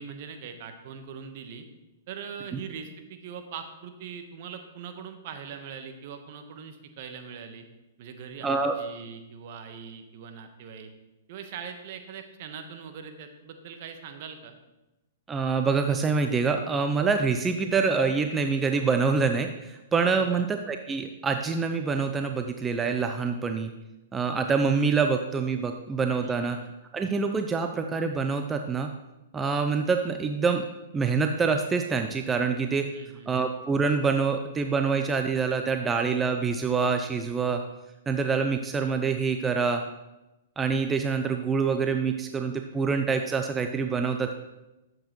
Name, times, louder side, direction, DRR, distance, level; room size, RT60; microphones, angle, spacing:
voice 1, 0.0-1.7 2.1-7.6 8.0-10.9 11.3-14.5 20.1-20.5 26.2-26.7 32.9-33.4, right 6 dB, 55° right, 7 dB, 1.2 m, -41 dB
voice 2, 8.4-8.8 15.3-23.7 24.1-26.6 26.9-28.9 29.3-30.7 30.9-32.9 33.3-37.6 38.1-39.8 40.6-44.4, right 5 dB, 15° right, 6 dB, 0.5 m, -26 dB
11.5 x 7.8 x 3.1 m, 1.0 s
hypercardioid pair, 125°, 0 cm